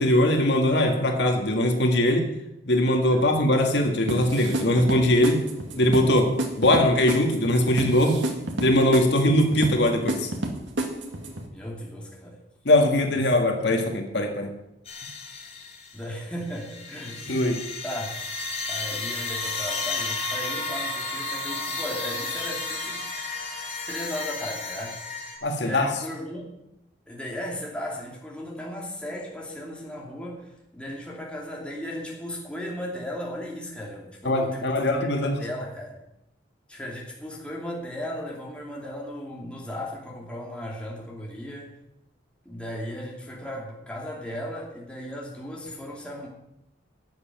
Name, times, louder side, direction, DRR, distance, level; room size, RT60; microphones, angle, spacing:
voice 1, 0.0-2.3 2.7-5.4 5.8-6.3 6.6-8.2 8.6-10.3 12.7-14.5 17.3-17.6 25.4-25.9 34.2-35.4, left 1 dB, 65° left, 3 dB, 1.8 m, -21 dB
sound 1, 4.1-11.5, right 1 dB, 80° right, 2.1 m, -30 dB
voice 2, 11.5-12.4 13.5-13.9 15.9-17.3 17.8-18.1 18.7-23.1 23.9-25.0 25.6-26.5 27.1-36.0 36.7-41.7 42.4-46.3, equal, 5° left, -3 dB, 2.7 m, -36 dB
sound 2, 14.8-16.0 16.4-25.4, left 3 dB, 35° left, 3.5 m, -32 dB
12.0 x 7.5 x 9.3 m, 0.86 s
head